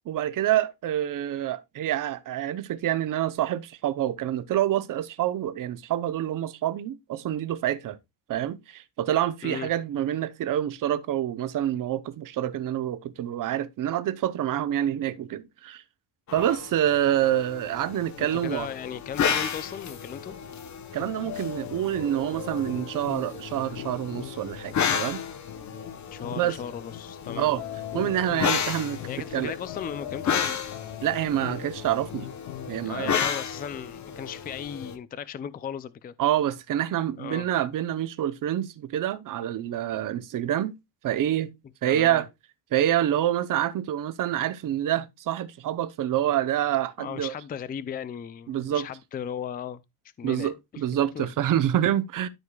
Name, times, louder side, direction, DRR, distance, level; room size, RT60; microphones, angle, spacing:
voice 1, 0.1-8.0 8.3-15.8 16.3-18.7 20.9-25.2 26.4-26.6 27.4-27.6 27.9-29.0 29.3-29.5 31.0-32.3 32.7-33.2 36.2-40.7 41.0-41.5 41.8-42.3 42.7-47.3 48.5-48.9 50.2-52.3, right 11 dB, 50° right, 0.9 m, -27 dB
sound 1, 16.3-35.0, left 7 dB, 45° left, 1.1 m, -33 dB
voice 2, 18.2-20.3 26.1-27.5 29.1-30.6 32.8-36.1 37.2-37.5 41.8-42.2 47.0-49.8 50.2-50.8 51.1-51.3, left 8 dB, 25° left, 0.4 m, -36 dB
sound 2, 21.0-32.9, left 12 dB, 80° left, 0.9 m, -40 dB
13.0 x 4.9 x 2.3 m
cardioid pair, 150°, 41 cm